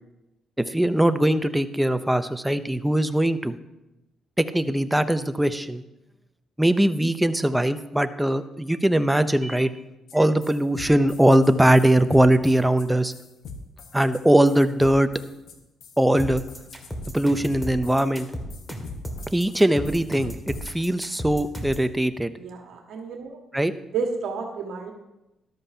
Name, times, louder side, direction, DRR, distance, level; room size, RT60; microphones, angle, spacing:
voice 1, 0.6-3.5 4.4-5.8 6.6-9.7 10.1-13.1 13.9-15.1 16.0-16.4 17.1-18.3 19.3-22.3 23.5-23.7, right 1 dB, 5° right, 11 dB, 0.6 m, -21 dB
sound 1, 10.1-10.2 10.4-20.7, left 4 dB, 75° left, 1.3 m, -43 dB
sound 2, 16.2-21.9, equal, 10° left, 2.0 m, -34 dB
voice 2, 22.3-23.4 23.9-24.9, right 5 dB, 75° right, 2 dB, 1.6 m, -31 dB
13.5 x 12.0 x 2.8 m, 0.96 s
cardioid pair, 90°, 0 cm